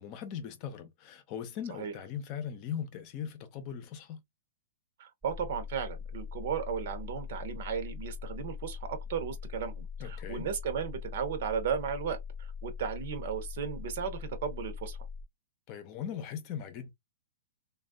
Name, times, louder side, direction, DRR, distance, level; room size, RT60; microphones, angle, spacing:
voice 1, 0.0-4.2 10.0-10.5 15.7-16.9, left 8 dB, 35° left, 0.8 m, -39 dB
voice 2, 5.0-15.0, right 7 dB, 55° right, 0.9 m, -35 dB
sound 1, 5.2-15.2, left 6 dB, 10° right, 0.7 m, -41 dB
3.3 x 2.4 x 2.3 m
hypercardioid pair, 155°, 0 cm